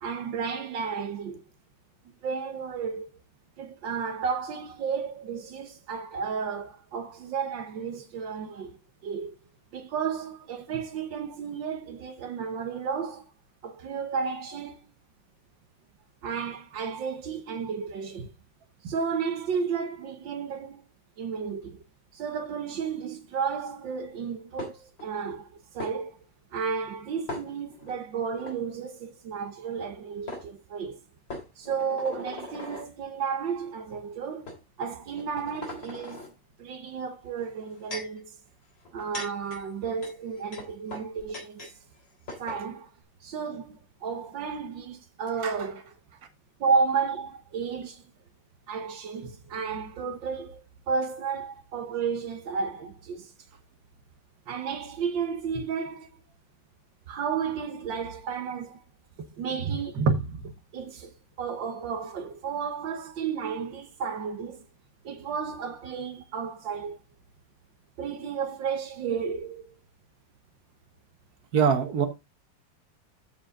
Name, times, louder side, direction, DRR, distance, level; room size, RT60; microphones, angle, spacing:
voice 1, 0.0-1.4 2.2-3.1 3.6-9.4 9.7-13.3 13.6-14.9 16.2-18.3 18.8-20.8 21.2-21.8 22.1-26.2 26.5-31.0 31.6-36.2 36.6-38.4 38.9-41.7 42.4-42.9 43.2-45.8 46.6-48.0 48.7-53.3 54.5-56.1 57.1-58.8 59.2-64.7 65.0-67.0 68.0-69.7, right 6 dB, 80° right, 1.8 m, -32 dB
sound 1, 24.6-25.1 25.8-25.9 27.3-27.9 28.4-28.5 29.8-29.9 30.3-30.4 31.3-32.9 33.7-33.8 34.5-34.6 35.1-36.3 37.4-38.2 38.8-41.7 42.0-42.1 42.3-42.6, left 2 dB, 75° left, 4.3 m, -40 dB
voice 2, 71.5-72.1, right 7 dB, 60° right, 1.9 m, -23 dB
14.0 x 4.9 x 3.7 m
omnidirectional pair, 2.0 m